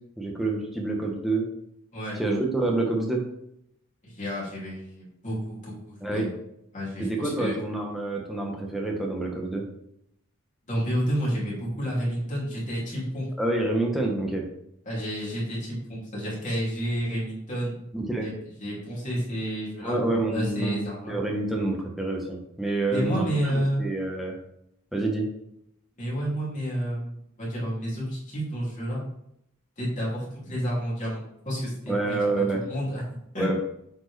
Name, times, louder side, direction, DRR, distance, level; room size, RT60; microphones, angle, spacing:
voice 1, 0.2-1.5 2.2-3.2 6.0-6.3 7.0-9.6 13.4-14.4 17.9-18.3 19.8-24.3 24.9-25.3 31.9-32.6 33.4-33.6, right 2 dB, ahead, -1 dB, 1.1 m, -27 dB
voice 2, 4.0-6.3 6.7-7.6 10.7-13.3 14.8-17.7 18.2-20.0 20.3-21.2 22.9-23.8 26.0-29.0 29.8-33.0 33.3-33.5, equal, 35° left, -6 dB, 2.9 m, -30 dB
8.3 x 4.5 x 3.4 m, 0.76 s
head